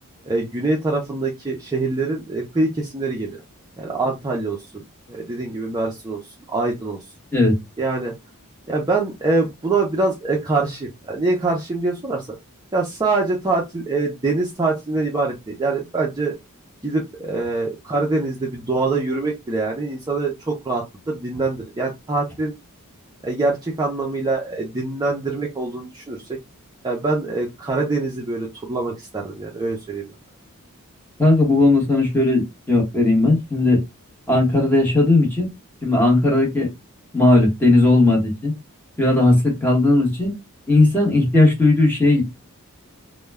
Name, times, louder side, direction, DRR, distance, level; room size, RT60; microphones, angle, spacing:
voice 1, 0.3-3.4 3.8-6.2 6.5-7.0 7.8-8.1 8.7-12.4 12.7-16.3 16.8-22.5 23.2-26.4 26.8-30.1, right 3 dB, 20° right, -1 dB, 0.4 m, -24 dB
voice 2, 31.2-33.8 34.3-35.5 35.8-36.7 37.1-38.5 39.0-40.3 40.7-42.2, left 2 dB, 10° left, -1 dB, 0.9 m, -17 dB
2.1 x 2.1 x 3.3 m, 0.22 s
head